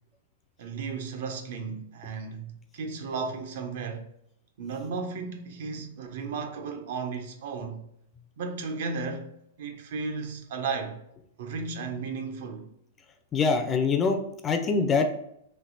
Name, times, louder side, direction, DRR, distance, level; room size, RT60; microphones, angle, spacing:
voice 1, 0.6-4.1 4.6-7.8 8.4-9.3 9.6-11.0 11.4-12.7, right 4 dB, 60° right, 0.6 m, -34 dB
voice 2, 13.3-15.1, left 4 dB, 20° left, 0.4 m, -24 dB
3.3 x 2.7 x 4.0 m
hypercardioid pair, 145°, 0 cm